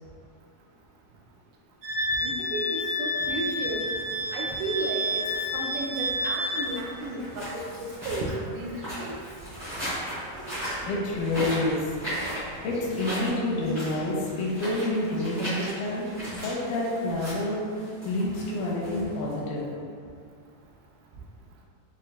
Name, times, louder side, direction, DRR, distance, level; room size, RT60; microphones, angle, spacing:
Wind instrument woodwind instrument, 1.8-6.7, left 1 dB, 65° right, 1.3 m, -29 dB
voice 1, 2.2-3.9 4.3-5.3 5.5-8.7 9.0-9.2, right 2 dB, 85° right, -1 dB, 2.1 m, -33 dB
sound 1, 3.9-19.6, equal, 50° right, 0.8 m, -38 dB
voice 2, 10.8-11.9 12.6-19.7, left 1 dB, 85° left, -4 dB, 2.2 m, -28 dB
6.2 x 2.1 x 2.2 m, 2.3 s
omnidirectional pair, 3.8 m